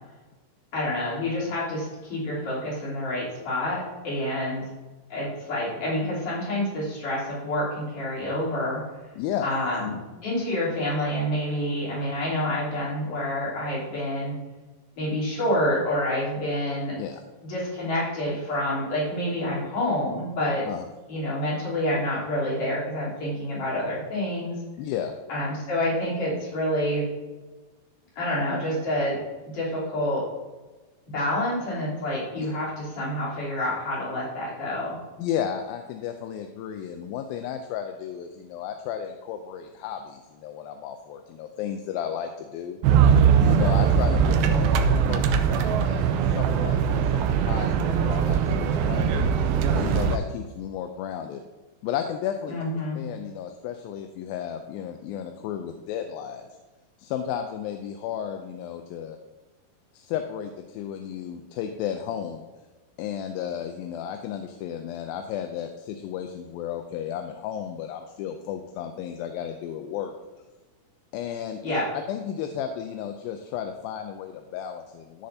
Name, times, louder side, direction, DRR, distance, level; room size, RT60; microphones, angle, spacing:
voice 1, 0.7-4.7 5.1-8.8 9.4-14.3 15.0-16.9 17.5-20.6 21.1-24.6 25.3-27.1 28.2-29.2 29.5-30.2 31.1-35.0 52.5-53.0 71.6-71.8, left 1 dB, 60° left, -8 dB, 4.9 m, -28 dB
voice 2, 9.2-9.5 17.0-17.2 20.7-20.9 24.8-25.2 32.4-32.5 35.2-42.8 43.4-49.2 49.8-51.4 51.8-52.5 53.0-56.5 57.0-59.2 59.9-62.4 63.0-70.1 71.1-71.6 72.1-75.3, left 9 dB, 85° left, 6 dB, 2.4 m, -33 dB
sound 1, 42.8-50.2, right 7 dB, 85° right, 2.4 m, -21 dB
14.5 x 6.6 x 2.8 m, 1.2 s
omnidirectional pair, 4.2 m